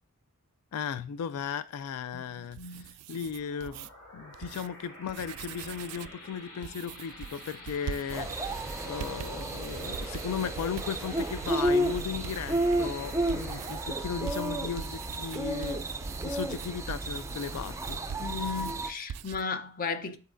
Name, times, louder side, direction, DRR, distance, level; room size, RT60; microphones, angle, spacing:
voice 1, 0.7-15.8 16.2-18.0, left 7 dB, 80° left, 0.3 m, -36 dB
voice 2, 2.1-2.9 18.2-20.2, left 5 dB, 40° left, 0.6 m, -35 dB
sound 1, 2.4-3.9 4.3-4.7 5.0-6.2 6.6-13.8 14.3-18.8 19.1-19.4, right 8 dB, 85° right, 0.3 m, -43 dB
sound 2, 3.2-16.3, left 1 dB, 65° left, 2.8 m, -49 dB
sound 3, 8.1-18.9, right 1 dB, 15° right, 0.4 m, -32 dB
10.5 x 4.0 x 2.5 m
head